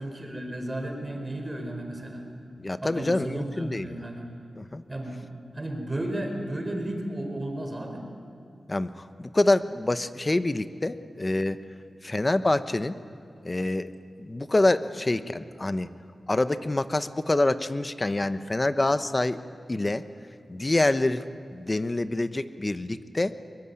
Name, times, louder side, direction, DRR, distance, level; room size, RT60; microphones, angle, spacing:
voice 1, 0.0-2.2 2.8-4.2 4.9-5.3 5.5-8.0, right 1 dB, 25° right, 3 dB, 4.8 m, -33 dB
voice 2, 2.6-3.9 4.6-4.8 8.7-11.6 12.0-13.0 13.4-13.9 14.2-15.9 16.3-19.4 19.7-20.0 20.5-21.2 21.5-23.3, left 2 dB, 25° left, 12 dB, 0.9 m, -26 dB
23.0 x 22.0 x 9.7 m, 2.6 s
wide cardioid pair, 85°, 0 cm